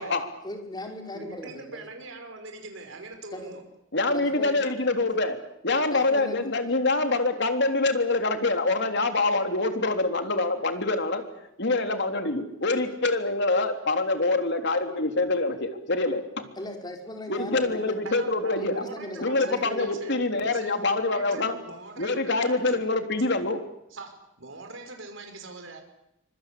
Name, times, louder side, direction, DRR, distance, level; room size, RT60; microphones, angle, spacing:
voice 1, 0.4-1.8 3.3-3.5 4.1-4.6 5.9-6.4 16.6-18.0 18.6-19.9, left 1 dB, 20° left, 3 dB, 5.3 m, -38 dB
voice 2, 1.1-3.6 18.0-22.8 23.9-25.8, right 3 dB, 70° right, 5 dB, 5.6 m, -42 dB
voice 3, 3.9-5.4 5.6-11.2 11.6-16.4 17.3-18.7 19.2-21.6 22.0-23.6, left 2 dB, 60° left, 6 dB, 3.5 m, -25 dB
25.5 x 25.0 x 8.6 m, 0.84 s
head